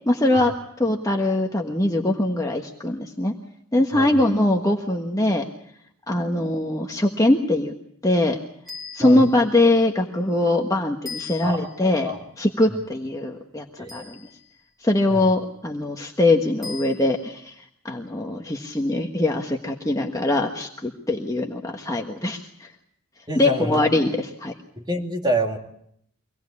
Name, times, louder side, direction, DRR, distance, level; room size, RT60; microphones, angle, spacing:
voice 1, 0.1-3.3 3.7-5.4 6.1-7.7 8.0-8.4 8.9-12.1 12.4-14.2 14.8-22.7 23.3-24.5, left 2 dB, 15° left, 1 dB, 1.3 m, -22 dB
sound 1, 8.7-9.5 11.1-11.9 13.9-14.6 16.6-17.3, left 5 dB, ahead, 6.2 m, -39 dB
voice 2, 23.3-23.8 24.8-25.6, right 1 dB, 20° right, 1 dB, 2.6 m, -27 dB
25.0 x 18.5 x 8.4 m, 0.71 s
head